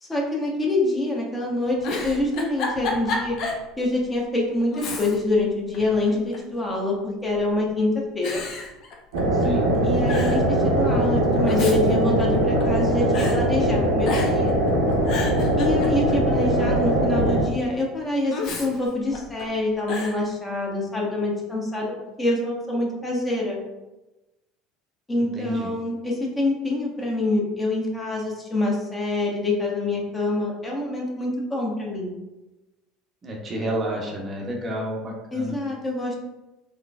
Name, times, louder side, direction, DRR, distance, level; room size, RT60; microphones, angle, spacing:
voice 1, 0.0-3.4 3.8-7.0 7.2-8.4 9.8-14.6 15.6-23.6 25.1-32.1 35.3-36.1, left 2 dB, 20° left, -2 dB, 1.0 m, -26 dB
Giggle, 1.7-3.7 4.0-4.1 4.7-5.4 5.7-6.5 7.3-7.7 8.2-9.5 9.7-9.8 10.1-10.5 11.3-12.8 13.1-13.4 14.0-14.5 14.9-16.3 18.3-19.4 19.9-20.2, left 3 dB, 55° left, 0.6 m, -31 dB
sound 1, 9.1-17.4, right 1 dB, 70° right, 0.7 m, -21 dB
voice 2, 9.3-9.7 25.2-25.7 33.2-35.6, equal, 35° right, 0 dB, 0.7 m, -30 dB
3.7 x 3.2 x 2.3 m, 1.0 s
figure-of-eight pair, 70°, 0 cm